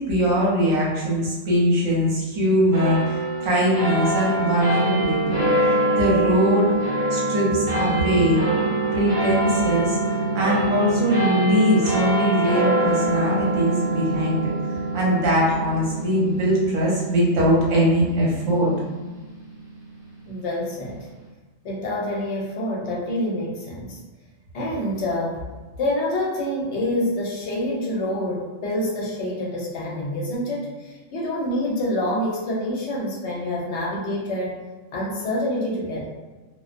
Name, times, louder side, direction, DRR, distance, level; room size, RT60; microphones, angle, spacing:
voice 1, 0.0-5.4 5.9-6.7 7.1-8.4 8.9-18.7, equal, 75° right, -5 dB, 1.1 m, -21 dB
sound 1, 2.7-19.4, right 1 dB, 30° right, 0.6 m, -25 dB
voice 2, 20.3-21.0 21.6-24.0 24.5-25.4 25.8-34.6 34.9-36.1, left 1 dB, 65° left, -4 dB, 0.9 m, -27 dB
2.4 x 2.1 x 2.4 m, 1.3 s
omnidirectional pair, 1.3 m